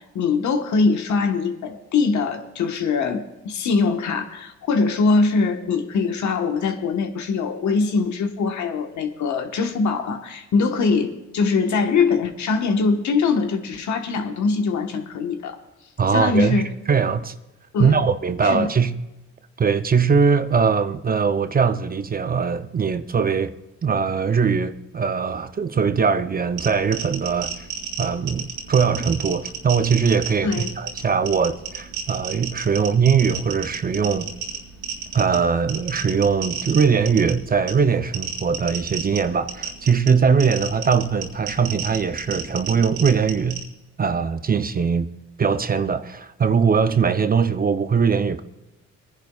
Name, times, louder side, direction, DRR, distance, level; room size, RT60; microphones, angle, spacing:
voice 1, 0.0-15.6 16.1-16.7 17.7-18.0 18.4-18.7 30.4-30.7, left 4 dB, 70° left, 1.3 m, -22 dB
voice 2, 16.0-16.6 16.9-17.3 17.8-18.9 19.6-23.5 23.8-27.7 28.0-34.3 35.1-43.6 44.0-45.1 45.4-48.4, right 6 dB, 30° right, 0.6 m, -21 dB
sound 1, 26.5-43.6, right 7 dB, 85° right, 2.9 m, -33 dB
25.5 x 10.5 x 2.4 m
cardioid pair, 90°, 30 cm